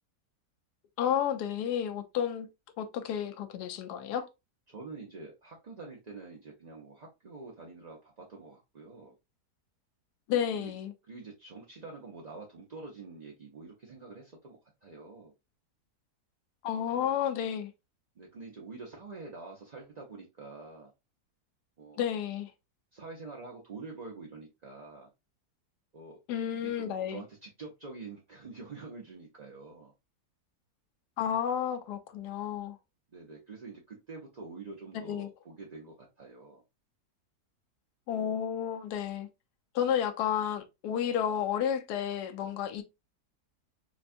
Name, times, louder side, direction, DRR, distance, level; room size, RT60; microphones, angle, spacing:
voice 1, 1.0-2.5 2.8-4.3 10.3-10.9 16.6-17.7 22.0-22.5 26.3-27.2 31.2-32.8 34.9-35.3 38.1-39.3 39.7-42.8, left 9 dB, 80° left, 1.2 m, -31 dB
voice 2, 4.7-9.1 10.5-10.7 11.1-15.3 16.9-17.1 18.1-20.9 21.8-22.0 22.9-25.1 25.9-26.2 26.5-29.9 33.1-36.6, right 3 dB, 45° right, 0.5 m, -46 dB
5.1 x 2.3 x 2.5 m
omnidirectional pair, 1.7 m